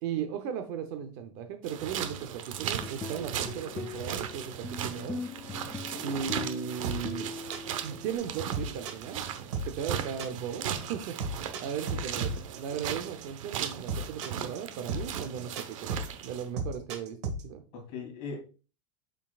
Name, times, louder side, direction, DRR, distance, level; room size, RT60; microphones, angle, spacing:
voice 1, 0.0-5.2 6.0-7.3 7.8-9.2 9.6-17.2 17.4-17.6, right 8 dB, 35° right, 8 dB, 0.6 m, -37 dB
sound 1, 1.6-16.5, right 9 dB, 75° right, 1.0 m, -37 dB
sound 2, 2.6-8.2, left 4 dB, 5° left, 0.3 m, -41 dB
sound 3, 6.8-17.4, right 3 dB, 60° right, 1.5 m, -34 dB
voice 2, 11.9-12.4 17.7-18.4, left 4 dB, 35° left, 1 dB, 2.6 m, -40 dB
6.9 x 5.8 x 2.3 m, 0.34 s
supercardioid pair, 180°, 17 cm